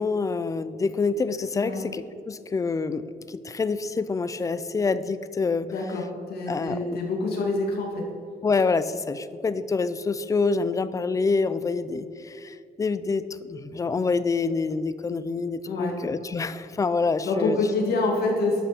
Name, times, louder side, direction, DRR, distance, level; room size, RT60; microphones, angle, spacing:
voice 1, 0.0-5.7 6.5-6.9 8.4-17.6, left 4 dB, 20° left, 14 dB, 0.4 m, -27 dB
voice 2, 1.5-1.8 5.7-8.0 15.7-16.0 17.2-18.6, left 3 dB, 80° left, 1 dB, 2.2 m, -26 dB
11.5 x 6.7 x 6.0 m, 2.4 s
cardioid pair, 150°, 16 cm